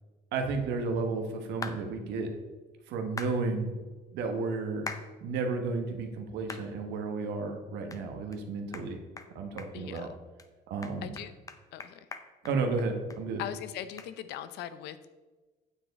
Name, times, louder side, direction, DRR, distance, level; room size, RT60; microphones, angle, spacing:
voice 1, 0.3-2.3 2.9-3.7 4.1-4.9 5.2-9.0 9.3-10.1 10.7-11.1 12.4-13.4, right 4 dB, 85° right, 4 dB, 1.3 m, -32 dB
sound 1, 1.6-1.8 3.2-3.3 4.9-5.1 5.6-5.7 6.5-6.7 7.1-7.2 7.9-8.0 8.3-8.4 8.7-8.9 9.2-9.3 9.6-10.0 10.4-10.5 10.8-13.2 13.5-13.6 14.0-14.1, left 3 dB, 20° left, 0.7 m, -41 dB
voice 2, 9.7-10.1 11.0-11.3 11.7-12.0 13.4-15.1, left 11 dB, 80° left, 13 dB, 0.6 m, -40 dB
9.0 x 7.1 x 4.1 m, 1.3 s
cardioid pair, 110°, 17 cm